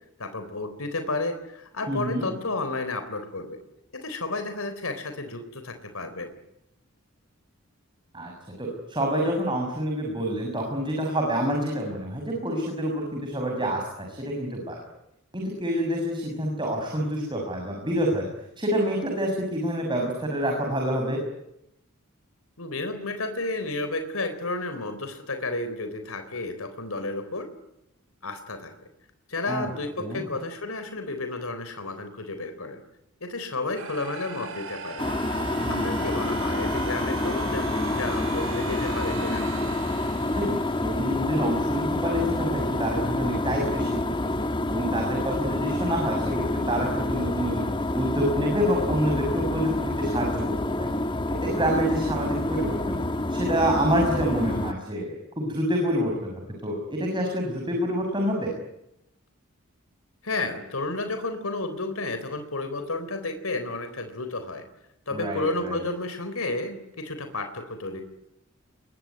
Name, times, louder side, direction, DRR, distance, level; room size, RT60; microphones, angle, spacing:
voice 1, 0.2-3.6 3.9-6.3 22.6-27.5 28.2-28.7 29.3-32.8 33.2-35.0 35.7-39.5 60.2-64.6 65.1-68.0, left 2 dB, 85° left, 8 dB, 3.9 m, -32 dB
voice 2, 1.9-2.3 8.1-8.3 8.6-14.8 15.3-18.3 18.6-21.2 29.5-29.7 30.0-30.2 35.6-36.0 40.4-44.0 44.7-47.7 47.9-49.7 50.0-50.9 51.4-53.0 53.3-58.5 65.1-65.8, equal, 20° right, 1 dB, 6.6 m, -27 dB
sound 1, 33.8-41.7, right 5 dB, 75° right, 4.6 m, -39 dB
Hervidor de agua, 35.0-54.7, left 1 dB, 25° left, 1.4 m, -28 dB
27.5 x 23.0 x 9.5 m, 0.86 s
head